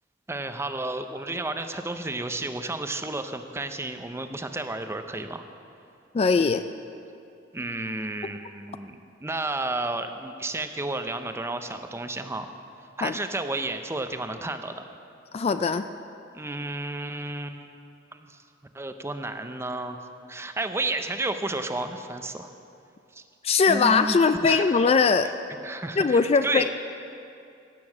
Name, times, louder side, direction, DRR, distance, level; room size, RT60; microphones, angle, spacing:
voice 1, 0.3-5.4 7.5-12.5 13.0-14.8 16.3-17.8 18.2-18.4 18.7-20.0 20.3-22.5 23.1-23.2 23.7-24.2 24.4-24.8 25.2-25.3 25.6-26.7, right 2 dB, 15° right, 8 dB, 0.6 m, -32 dB
voice 2, 6.1-6.6 13.0-13.1 15.3-15.8 23.4-25.3 26.0-26.7, left 5 dB, 30° left, 10 dB, 0.3 m, -21 dB
17.0 x 6.9 x 7.2 m, 2.6 s
head